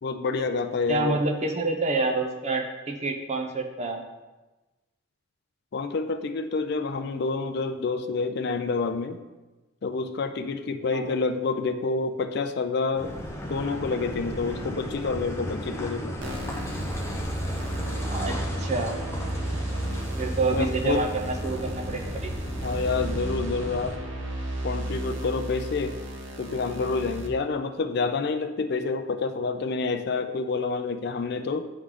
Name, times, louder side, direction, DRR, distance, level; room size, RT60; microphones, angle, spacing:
voice 1, 0.0-1.2 5.7-9.2 9.8-13.2 13.5-16.2 20.5-21.1 22.6-24.0 24.6-26.0 26.4-31.7, left 4 dB, 55° left, 8 dB, 0.4 m, -28 dB
voice 2, 0.9-4.0 10.9-11.1 18.1-18.9 20.2-22.3, right 3 dB, 35° right, 2 dB, 0.7 m, -28 dB
Car passing by / Idling / Accelerating revving vroom, 12.9-24.0, equal, 15° left, 0.6 m, -34 dB
sound 1, 16.2-27.3, right 1 dB, 70° right, 0.8 m, -34 dB
9.6 x 3.2 x 3.7 m, 1.1 s
head